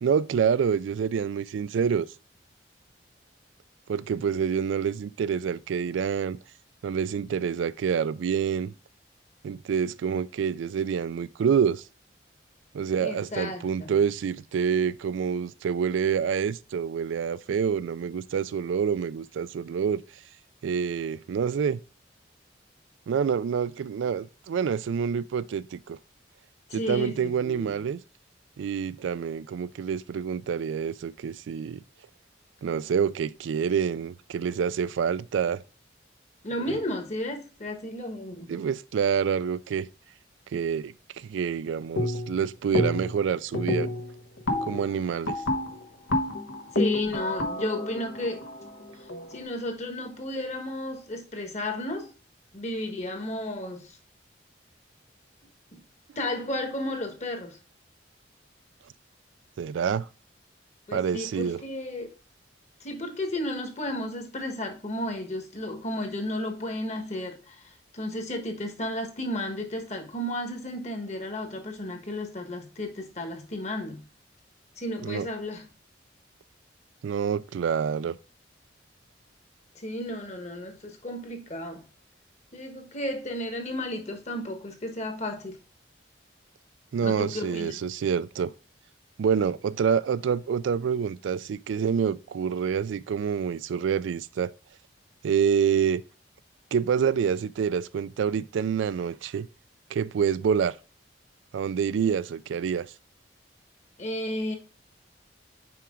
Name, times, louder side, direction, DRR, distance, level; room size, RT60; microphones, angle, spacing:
voice 1, 0.0-2.1 3.9-6.4 6.8-8.7 9.4-11.8 12.7-20.0 20.6-21.8 23.1-26.0 26.7-28.0 28.6-31.8 32.6-35.6 36.7-36.8 38.5-39.9 40.5-43.9 44.6-45.4 59.6-60.1 60.9-61.6 75.0-75.3 77.0-78.2 86.9-88.5 89.2-94.5 95.2-96.0 96.7-99.5 99.9-100.8 101.5-102.9, right 7 dB, 80° right, 0.3 m, -27 dB
voice 2, 13.0-13.9 26.7-27.8 36.4-38.6 46.7-48.5 49.3-52.1 52.5-54.0 55.7-55.8 56.1-57.6 60.9-62.1 62.8-74.0 74.8-75.7 79.7-81.8 82.5-85.6 87.0-87.8 104.0-104.6, left 1 dB, 35° left, 1.2 m, -33 dB
sound 1, 42.0-42.4 42.7-43.2 43.5-49.4, left 1 dB, 90° left, 1.2 m, -29 dB
5.8 x 5.0 x 3.6 m
head